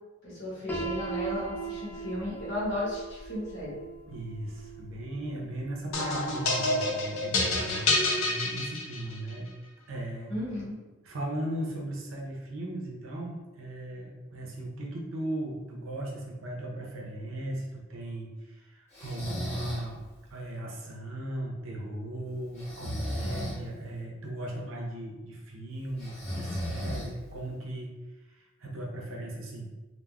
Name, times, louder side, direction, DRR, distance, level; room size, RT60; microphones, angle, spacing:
voice 1, 0.2-3.8 10.3-10.8, left 1 dB, 60° left, -6 dB, 1.2 m, -34 dB
Piano, 0.7-6.5, right 5 dB, 10° left, 0.4 m, -39 dB
voice 2, 4.1-9.5 9.9-10.3 11.0-27.9 28.3-29.7, right 1 dB, 75° right, -1 dB, 0.6 m, -37 dB
sound 1, 5.9-9.3, left 2 dB, 90° left, 0.7 m, -27 dB
Breathing, 18.9-19.9 22.6-23.6 26.0-27.4, equal, 35° left, 1.1 m, -35 dB
3.4 x 2.1 x 2.2 m, 1.2 s
head